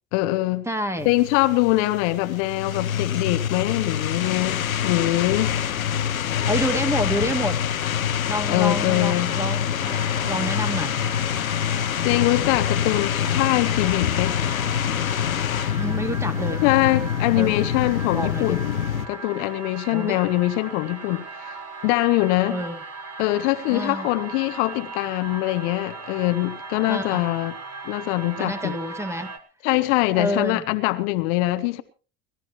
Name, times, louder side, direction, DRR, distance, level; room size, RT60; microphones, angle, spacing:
voice 1, 0.1-0.7 1.0-5.6 8.5-9.3 12.0-14.4 16.6-21.6 21.8-22.6 23.2-27.5 27.8-28.7 29.6-31.8, left 18 dB, 60° left, 1.1 m, -23 dB
voice 2, 0.7-1.1 6.2-7.6 8.3-11.0 15.8-16.6 17.4-17.7 18.1-18.6 19.9-20.2 22.5-22.8 23.7-24.1 26.8-27.2 28.4-29.3 30.1-30.6, equal, 5° right, 2.1 m, -28 dB
sound 1, 1.0-19.1, left 9 dB, 90° left, 0.8 m, -25 dB
sound 2, 9.8-29.4, right 3 dB, 40° right, 2.2 m, -38 dB
29.5 x 13.0 x 3.1 m
hypercardioid pair, 75°, 40 cm